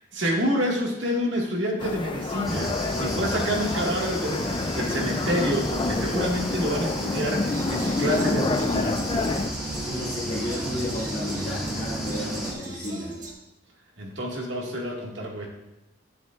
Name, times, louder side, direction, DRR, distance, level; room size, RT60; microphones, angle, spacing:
voice 1, 0.1-9.0 14.0-15.5, equal, 65° right, -1 dB, 1.9 m, -28 dB
sound 1, 1.8-9.5, left 2 dB, 25° left, 0.4 m, -28 dB
sound 2, 2.4-12.5, equal, ahead, 2.1 m, -33 dB
sound 3, 7.5-13.3, right 2 dB, 40° right, 1.5 m, -40 dB
voice 2, 9.7-13.1, left 1 dB, 40° left, -9 dB, 2.5 m, -32 dB
10.5 x 9.6 x 2.5 m, 0.98 s
head